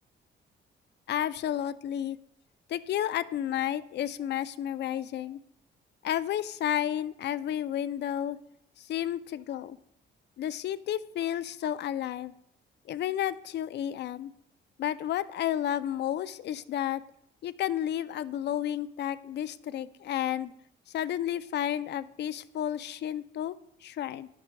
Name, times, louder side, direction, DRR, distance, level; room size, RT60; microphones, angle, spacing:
voice 1, 1.1-2.2 2.7-5.4 6.0-8.4 8.8-9.8 10.4-12.3 12.9-14.3 14.8-17.0 17.4-20.5 20.9-23.6 23.8-24.3, left 11 dB, 60° left, 15 dB, 0.4 m, -31 dB
11.0 x 5.9 x 2.2 m, 0.74 s
cardioid pair, 90°, 20 cm